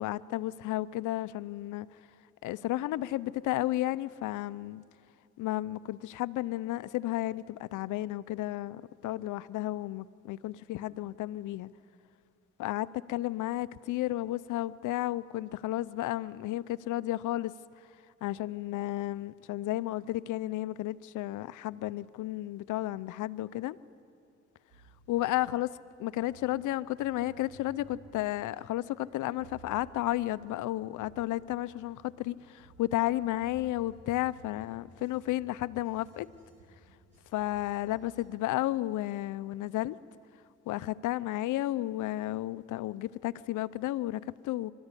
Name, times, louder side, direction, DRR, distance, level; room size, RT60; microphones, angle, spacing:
voice 1, 0.0-1.9 2.4-4.8 5.4-11.7 12.6-17.5 18.2-23.8 25.1-25.7 26.0-36.3 37.3-40.0 40.7-44.7, left 15 dB, 80° left, 16 dB, 0.6 m, -33 dB
sound 1, 24.7-38.3, right 3 dB, 55° right, 3.2 m, -58 dB
27.5 x 13.5 x 9.9 m, 2.4 s
cardioid pair, 90°, 30 cm